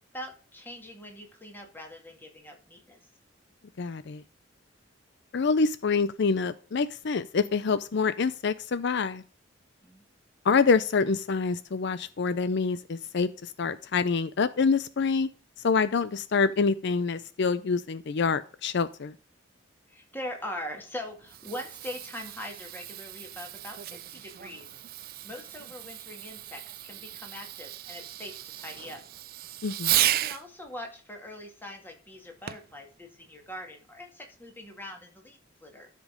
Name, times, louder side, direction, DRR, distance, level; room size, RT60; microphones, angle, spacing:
voice 1, 0.1-3.0 9.8-10.0 19.9-24.7 25.2-29.0 30.0-35.9, left 1 dB, 10° left, 2 dB, 2.2 m, -42 dB
voice 2, 3.8-4.2 5.3-9.2 10.4-15.3 15.6-19.1 29.6-29.9, left 5 dB, 60° left, 14 dB, 0.5 m, -26 dB
Fireworks, 21.1-30.4 32.5-32.8 33.5-33.6, right 14 dB, 50° right, 0.4 m, -34 dB
13.0 x 5.2 x 5.1 m, 0.39 s
head